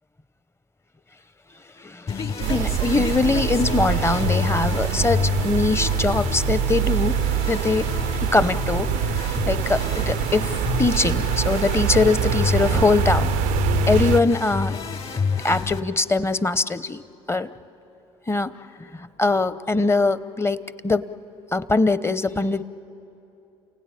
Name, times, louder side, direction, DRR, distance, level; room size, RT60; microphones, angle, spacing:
voice 1, 1.8-7.1 7.5-7.9 8.2-10.5 10.8-13.3 13.9-14.8 15.4-17.0 17.3-17.5 18.3-18.5 18.8-21.1 21.5-22.6, left 3 dB, 20° left, 15 dB, 0.9 m, -22 dB
sound 1, 2.1-15.8, left 5 dB, 45° left, 3.3 m, -28 dB
sound 2, 2.4-14.2, right 15 dB, 75° right, 0.5 m, -25 dB
29.0 x 17.0 x 9.9 m, 2.9 s
supercardioid pair, 70°, 14 cm